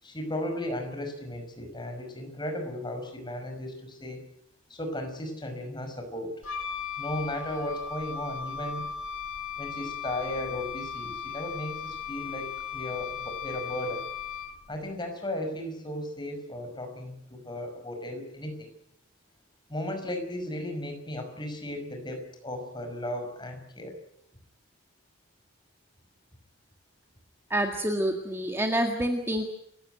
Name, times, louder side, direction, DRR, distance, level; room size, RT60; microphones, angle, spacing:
voice 1, 0.0-4.2 4.7-6.4 7.0-8.8 9.6-14.1 14.7-18.7 19.7-24.0, left 1 dB, 20° left, 5 dB, 5.7 m, -35 dB
Wind instrument woodwind instrument, 6.4-14.8, left 7 dB, 70° left, 2.4 m, -37 dB
voice 2, 27.5-29.5, right 1 dB, 10° right, 3 dB, 1.8 m, -27 dB
29.5 x 16.0 x 9.2 m, 0.77 s
head